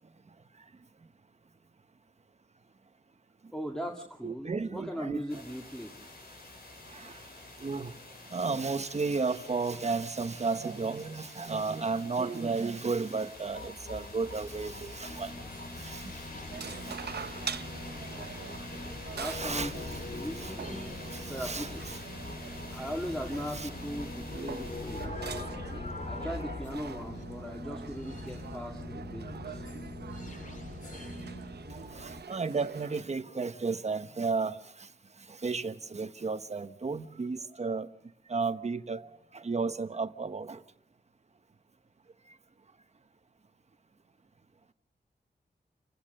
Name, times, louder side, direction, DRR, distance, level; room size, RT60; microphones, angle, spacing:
voice 1, 3.5-5.9 19.2-20.9 21.3-21.8 22.7-25.3 26.1-29.7, equal, 5° left, 2.1 m, -39 dB
voice 2, 4.2-5.4 6.9-7.2 7.6-7.9 8.3-15.3 15.8-16.1 16.9-17.0 19.2-20.0 20.4-20.5 21.1-22.0 23.5-23.7 31.7-34.6 35.4-37.9 38.3-40.6, right 4 dB, 40° right, 1.2 m, -33 dB
sound 1, 5.3-25.1, left 2 dB, 70° left, 6.0 m, -48 dB
sound 2, 13.4-32.2, left 2 dB, 50° left, 2.5 m, -42 dB
sound 3, 16.5-33.0, right 6 dB, 80° right, 0.9 m, -45 dB
29.0 x 16.5 x 6.7 m
wide cardioid pair, 120°, 17 cm